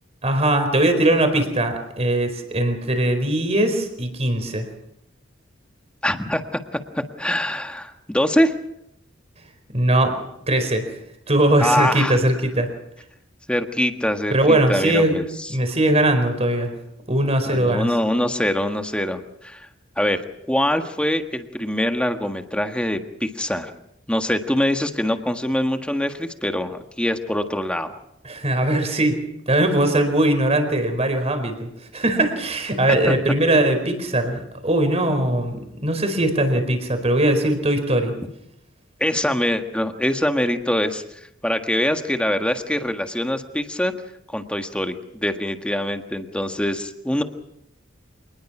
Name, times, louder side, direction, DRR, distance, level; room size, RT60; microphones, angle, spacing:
voice 1, 0.2-4.7 9.7-10.2 10.5-10.9 11.3-12.7 14.3-15.2 15.5-16.7 17.1-17.9 28.2-38.1, right 1 dB, 30° right, 7 dB, 4.5 m, -20 dB
voice 2, 6.0-6.6 6.9-8.5 11.6-12.2 13.5-15.5 17.4-19.7 20.0-20.2 20.5-23.7 24.1-28.0 33.1-33.2 39.0-41.0 41.4-43.9 44.3-47.2, left 1 dB, 5° left, 6 dB, 1.6 m, -23 dB
26.0 x 20.0 x 6.1 m, 0.79 s
head